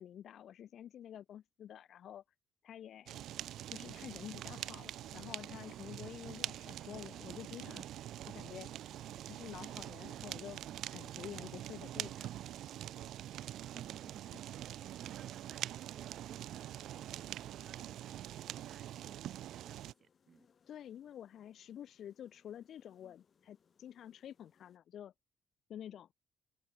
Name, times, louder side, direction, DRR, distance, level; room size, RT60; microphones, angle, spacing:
voice 1, 0.0-2.2 2.6-3.2 3.7-7.8 8.3-8.7 9.3-10.6 10.9-12.3 14.8-14.9 20.7-25.1 25.7-26.1, left 10 dB, 60° left, 1.1 m, -49 dB
Fire, 3.1-19.9, right 12 dB, 75° right, 0.5 m, -44 dB
sound 1, 5.4-24.8, left 6 dB, 40° left, 5.0 m, -73 dB
voice 2, 13.7-14.4 15.0-20.5, right 7 dB, 40° right, 4.9 m, -60 dB
cardioid pair, 145°, 0 cm